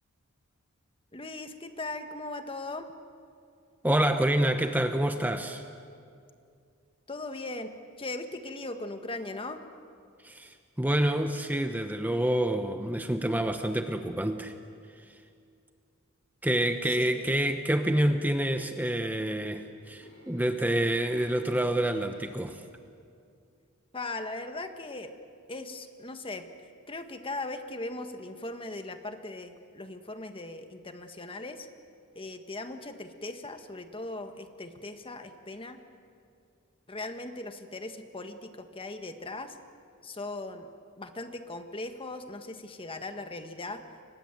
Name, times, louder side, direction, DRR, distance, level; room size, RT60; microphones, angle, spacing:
voice 1, 1.1-2.9 7.1-7.7 8.0-9.6 16.8-17.3 23.9-25.1 25.5-26.5 26.9-31.7 32.1-35.8 36.9-39.6 40.0-40.7 41.0-43.8, left 2 dB, 25° left, 7 dB, 1.5 m, -39 dB
voice 2, 3.8-5.6 10.2-14.5 16.4-22.6, right 1 dB, 10° right, 6 dB, 0.9 m, -27 dB
sound 1, 19.2-22.6 22.9-23.2, left 2 dB, 90° left, 7.9 m, -54 dB
30.0 x 25.0 x 7.8 m, 2.4 s
head